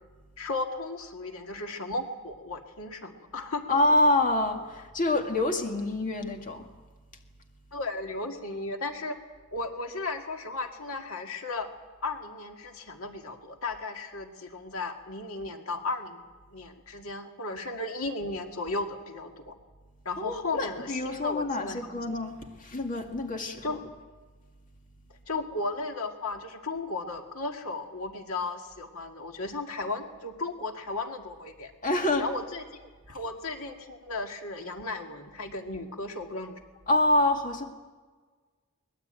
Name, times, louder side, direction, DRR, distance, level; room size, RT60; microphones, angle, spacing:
voice 1, 0.4-3.8 7.7-9.2 9.5-11.7 12.0-16.3 16.5-19.5 20.1-21.9 23.6-23.8 25.3-31.7 32.2-36.5, left 3 dB, 75° left, 4 dB, 2.1 m, -35 dB
voice 2, 3.7-6.7 20.2-23.8 31.8-32.3 36.9-37.6, left 2 dB, 40° left, 4 dB, 2.1 m, -26 dB
23.5 x 20.5 x 8.9 m, 1.4 s
head